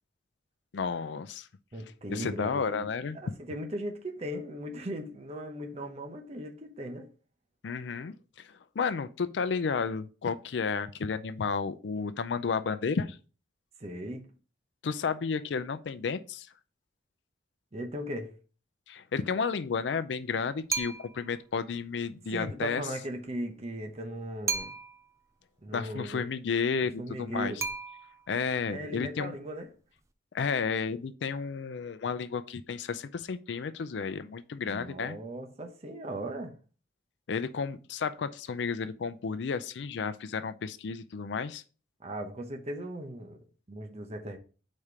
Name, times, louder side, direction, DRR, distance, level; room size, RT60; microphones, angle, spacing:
voice 1, 0.7-1.5 2.1-3.2 7.6-13.2 14.8-16.5 18.9-22.8 25.7-27.5 28.3-29.4 30.3-35.2 37.3-41.6, left 5 dB, 75° left, 0.4 m, -32 dB
voice 2, 1.7-2.9 3.1-7.1 13.8-14.3 17.7-18.4 22.3-24.8 25.6-26.2 27.0-27.6 28.7-29.7 34.6-36.6 42.0-43.4 43.7-44.4, right 1 dB, 35° right, 0.8 m, -38 dB
sound 1, 20.7-21.3 24.5-25.2 27.6-28.4, right 5 dB, 15° right, 0.4 m, -34 dB
5.0 x 4.3 x 4.8 m
head